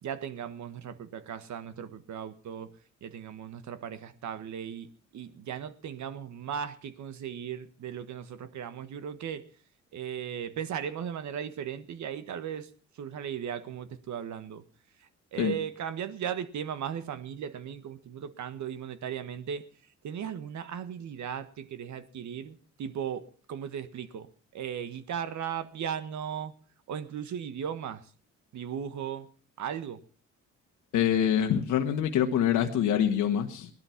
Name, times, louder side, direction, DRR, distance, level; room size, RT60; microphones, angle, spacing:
voice 1, 0.0-9.5 9.9-14.6 15.0-19.6 20.0-26.5 26.9-28.1 28.5-29.3 29.6-30.0, right 8 dB, 70° right, 1.6 m, -37 dB
voice 2, 30.9-33.7, left 9 dB, 80° left, 1.6 m, -25 dB
18.5 x 12.0 x 5.9 m
cardioid pair, 90°, 30 cm